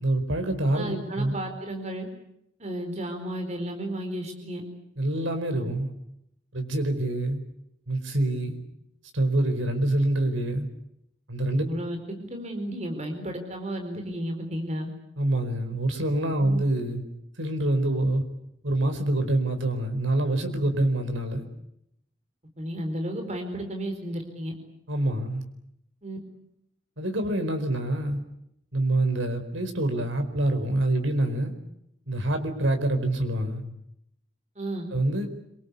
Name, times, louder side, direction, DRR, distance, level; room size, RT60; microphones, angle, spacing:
voice 1, 0.0-1.3 5.0-5.9 6.5-7.4 7.9-8.6 9.1-10.7 11.3-11.6 15.2-17.0 17.4-18.2 18.6-21.5 24.9-25.4 27.0-28.2 28.7-31.5 32.1-33.6 34.9-35.3, right 1 dB, 90° right, 7 dB, 4.6 m, -26 dB
voice 2, 0.7-2.1 2.6-4.6 11.5-14.9 16.4-16.6 22.6-24.5 26.0-26.2 34.6-34.9, right 1 dB, 35° right, 4 dB, 4.3 m, -33 dB
26.5 x 24.0 x 8.4 m, 0.79 s
head